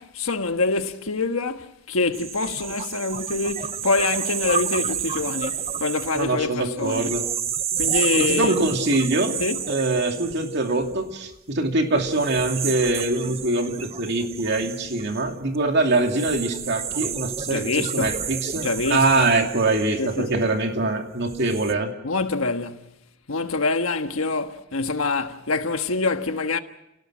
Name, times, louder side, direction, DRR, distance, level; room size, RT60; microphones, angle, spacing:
voice 1, 0.0-7.1 7.8-8.6 9.4-9.6 17.5-18.1 18.6-19.3 20.0-20.3 22.0-22.9 23.3-26.6, left 3 dB, 85° left, 1.5 m, -25 dB
sound 1, 2.1-11.3 12.0-20.7 21.2-21.7, right 8 dB, 30° right, 0.8 m, -31 dB
voice 2, 6.1-7.2 8.2-9.4 9.7-21.9, right 2 dB, 55° right, 2.7 m, -23 dB
30.0 x 18.5 x 6.3 m
head